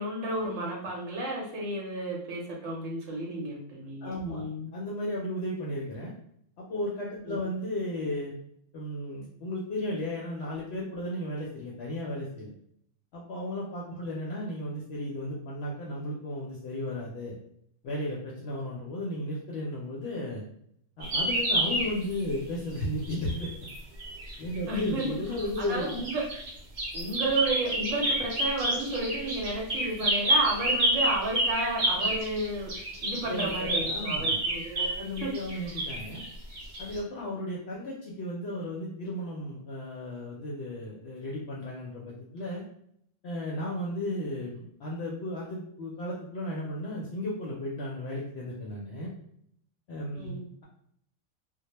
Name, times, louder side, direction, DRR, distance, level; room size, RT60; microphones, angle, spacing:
voice 1, 0.0-4.7 7.2-7.4 24.7-25.1 25.6-26.2 26.9-35.3 35.6-35.7 50.1-50.5, right 2 dB, 75° right, -2 dB, 1.0 m, -32 dB
voice 2, 4.0-4.4 4.7-6.1 6.7-8.3 8.7-12.5 13.1-17.4 17.8-20.4 21.0-23.6 24.4-25.9 33.3-34.4 34.9-36.2 36.8-42.6 43.2-49.1 49.9-50.3, left 1 dB, 65° left, -4 dB, 0.7 m, -34 dB
sound 1, 21.0-22.3 23.0-26.5 26.8-37.0, right 1 dB, 50° right, 0.6 m, -29 dB
2.2 x 2.1 x 2.9 m, 0.71 s
omnidirectional pair, 1.3 m